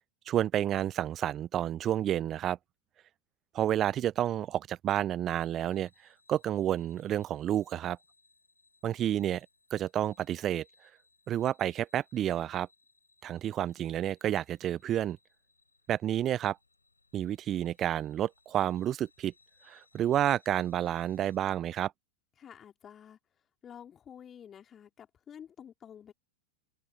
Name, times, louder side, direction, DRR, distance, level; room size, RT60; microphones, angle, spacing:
voice 1, 0.3-2.6 3.5-5.9 6.3-8.0 8.8-9.5 9.7-10.6 11.3-12.7 13.2-15.2 15.9-16.6 17.1-19.3 19.7-21.9, right 11 dB, 30° right, 0.7 m, -30 dB
sound 1, 5.3-21.4, left 3 dB, 80° left, 6.3 m, -68 dB
voice 2, 22.4-23.2 23.6-26.1, left 8 dB, 25° left, 4.0 m, -50 dB
figure-of-eight pair, 90°, 0 cm